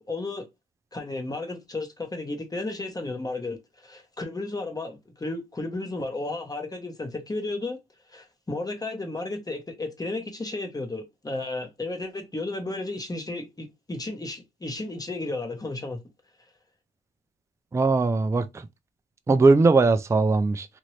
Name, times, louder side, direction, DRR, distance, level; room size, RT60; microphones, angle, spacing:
voice 1, 0.1-0.5 0.9-7.8 8.1-16.0, left 2 dB, 20° left, 0.9 m, -33 dB
voice 2, 17.7-18.4 19.3-20.7, right 3 dB, 15° right, 0.4 m, -19 dB
3.0 x 2.6 x 3.0 m
cardioid pair, 90°, 20 cm